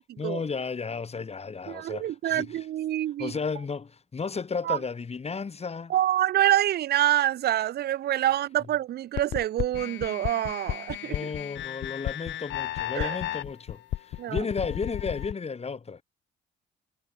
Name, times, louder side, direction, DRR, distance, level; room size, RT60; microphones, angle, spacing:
voice 1, 0.2-2.7 3.2-5.9 11.0-16.0, left 5 dB, 30° left, 1.9 m, -33 dB
voice 2, 1.7-3.3 4.7-4.8 5.9-11.2 12.9-13.1 14.2-14.4, right 12 dB, 55° right, 0.4 m, -26 dB
sound 1, 9.2-15.3, left 13 dB, 65° left, 0.6 m, -33 dB
cardioid pair, 90°, 20 cm